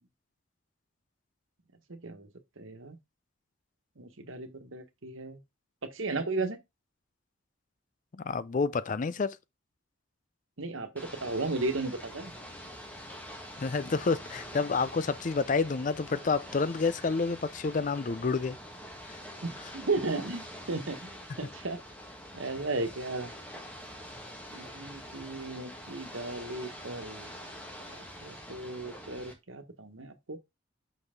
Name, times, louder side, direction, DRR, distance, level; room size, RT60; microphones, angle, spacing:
voice 1, 1.9-2.3 2.6-3.0 4.0-5.4 5.8-6.6 10.6-12.3 19.4-21.8 22.3-23.3 24.5-27.3 27.8-27.9 28.2-30.4, right 3 dB, 85° right, 1.3 m, -35 dB
voice 2, 8.1-9.4 13.6-18.6 19.1-19.2, left 4 dB, 40° left, 0.4 m, -29 dB
Ocean / Boat Water vehicle, 11.0-29.3, equal, 10° left, 1.5 m, -45 dB
6.2 x 5.5 x 3.7 m
head